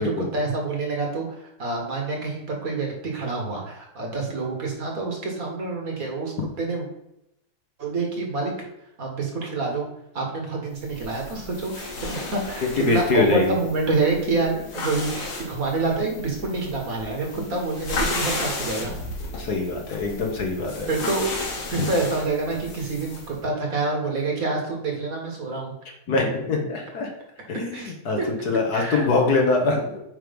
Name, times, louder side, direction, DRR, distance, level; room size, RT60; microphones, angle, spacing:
voice 1, 0.0-6.9 7.8-8.5 9.0-9.9 10.1-18.9 20.9-21.3 21.7-25.7 27.7-28.3 28.7-29.1, right 3 dB, 45° right, 0 dB, 1.9 m, -27 dB
sound 1, 10.8-23.4, left 2 dB, 90° left, 2.5 m, -34 dB
voice 2, 12.8-13.6 17.4-17.5 19.3-20.9 21.8-21.9 26.1-27.1 27.5-30.0, left 3 dB, 50° left, 1 dB, 1.6 m, -23 dB
9.2 x 3.3 x 5.2 m, 0.83 s
omnidirectional pair, 2.3 m